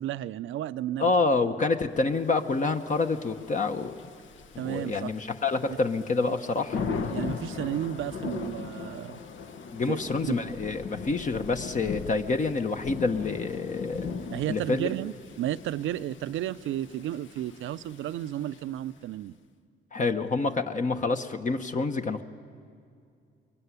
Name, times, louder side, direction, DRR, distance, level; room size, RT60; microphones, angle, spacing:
voice 1, 0.0-1.1 4.6-5.1 5.7-5.8 7.1-9.2 9.9-10.4 14.3-19.3, right 12 dB, 80° right, 15 dB, 0.6 m, -33 dB
voice 2, 1.0-3.9 4.6-6.8 9.7-14.1 14.5-14.9 19.9-22.2, left 3 dB, 40° left, 6 dB, 1.2 m, -27 dB
Thunder / Rain, 2.4-19.0, left 5 dB, 70° left, 1.3 m, -39 dB
22.5 x 22.5 x 9.8 m, 2.4 s
cardioid pair, 90°, 20 cm